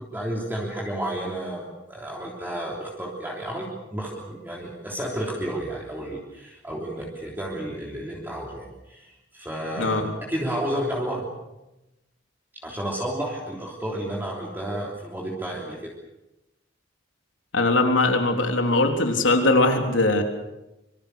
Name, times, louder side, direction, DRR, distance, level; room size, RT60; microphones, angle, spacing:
voice 1, 0.0-11.3 12.6-15.9, right 1 dB, 10° right, -3 dB, 3.3 m, -31 dB
voice 2, 17.5-20.2, left 2 dB, 85° left, 4 dB, 3.7 m, -20 dB
25.5 x 24.5 x 6.7 m, 0.97 s
head